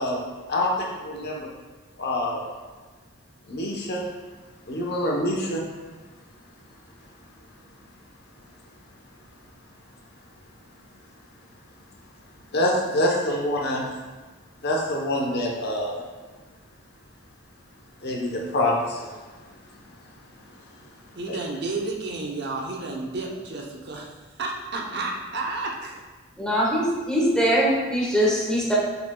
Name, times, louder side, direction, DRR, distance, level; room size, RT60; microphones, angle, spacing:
voice 1, 0.0-1.5 2.0-2.4 3.5-4.0 4.7-5.6 12.5-13.8 14.6-16.0 18.0-19.2 19.8-19.9 20.4-20.7 21.3-21.4, left 1 dB, 55° left, -1 dB, 1.1 m, -26 dB
voice 2, 21.2-24.1 24.4-26.0, right 3 dB, 55° right, -1 dB, 0.8 m, -31 dB
voice 3, 26.4-28.7, equal, 5° left, -5 dB, 1.5 m, -22 dB
7.2 x 5.9 x 2.3 m, 1.3 s
head